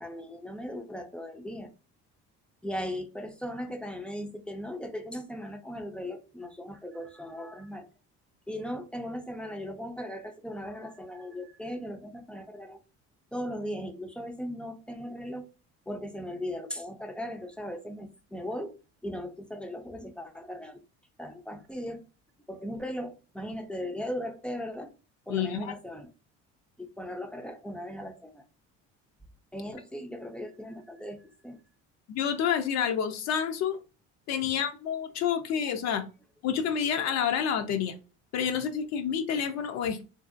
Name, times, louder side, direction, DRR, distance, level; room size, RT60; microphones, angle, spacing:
voice 1, 0.0-1.7 2.6-7.9 8.5-12.8 13.3-15.5 15.9-18.7 19.0-20.8 21.2-22.0 22.5-24.9 25.3-26.1 26.8-28.5 29.5-31.6 34.4-34.5, equal, 5° left, 5 dB, 0.4 m, -38 dB
voice 2, 25.3-25.7 32.1-33.8 34.3-36.0 36.4-37.9 38.3-40.1, left 8 dB, 60° left, 6 dB, 0.5 m, -29 dB
2.9 x 2.7 x 2.4 m, 0.33 s
cardioid pair, 120°, 30 cm